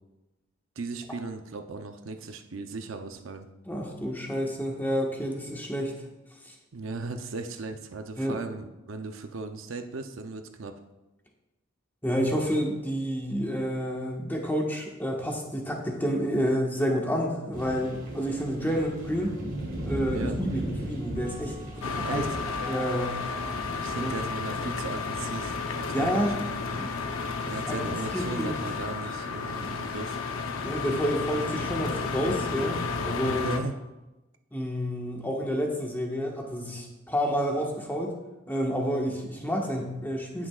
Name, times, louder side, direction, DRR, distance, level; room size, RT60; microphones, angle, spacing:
voice 1, 0.8-3.5 6.7-10.8 20.1-20.4 22.0-22.4 23.8-26.4 27.5-30.2 33.4-33.8, right 3 dB, 70° right, 6 dB, 0.6 m, -37 dB
voice 2, 3.7-6.0 6.4-6.5 8.2-8.4 12.0-19.4 19.9-22.2 22.7-23.2 24.0-24.1 25.9-26.3 26.7-26.9 27.4-27.8 28.1-28.6 30.6-32.8 33.0-33.6 34.5-38.1 38.5-40.5, equal, 10° left, -1 dB, 1.4 m, -29 dB
sound 1, 17.5-32.8, right 1 dB, 45° right, 3.1 m, -40 dB
sound 2, 21.1-25.4, right 3 dB, 55° left, 3.3 m, -47 dB
sound 3, 21.8-33.6, left 4 dB, 85° left, 0.8 m, -32 dB
17.5 x 6.2 x 2.4 m, 1.0 s
head